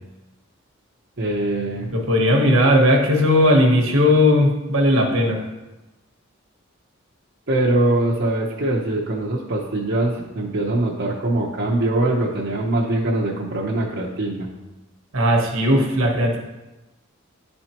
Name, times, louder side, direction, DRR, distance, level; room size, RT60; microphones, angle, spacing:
voice 1, 1.2-1.9 7.5-14.5, right 2 dB, 50° right, -5 dB, 0.8 m, -22 dB
voice 2, 1.9-5.5 15.1-16.4, left 1 dB, 70° right, 1 dB, 1.1 m, -17 dB
11.0 x 4.4 x 2.9 m, 1.1 s
head